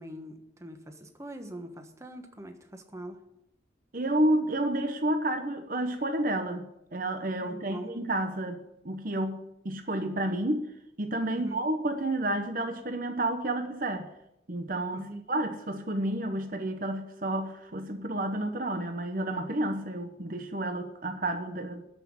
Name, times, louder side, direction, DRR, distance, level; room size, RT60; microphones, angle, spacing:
voice 1, 0.0-3.2 7.4-7.9 11.3-11.6 14.9-15.2, right 1 dB, 15° right, 5 dB, 1.3 m, -43 dB
voice 2, 3.9-10.7 11.0-14.1 14.5-21.8, right 1 dB, 50° right, 6 dB, 1.0 m, -30 dB
13.5 x 5.9 x 8.8 m, 0.83 s
head